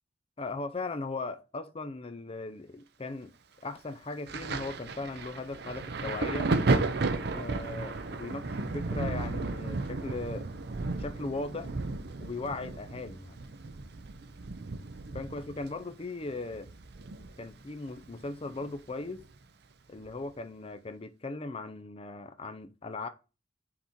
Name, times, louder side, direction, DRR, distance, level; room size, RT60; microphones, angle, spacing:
voice 1, 0.4-3.4 3.6-6.5 7.3-10.5 11.0-11.7 12.2-13.4 15.1-16.7 17.4-19.2 19.9-23.1, left 3 dB, 30° left, 0.6 m, -38 dB
Thunder, 4.3-17.6 17.9-19.2 20.1-20.2, right 3 dB, 60° right, 0.7 m, -34 dB
5.9 x 4.2 x 4.5 m
head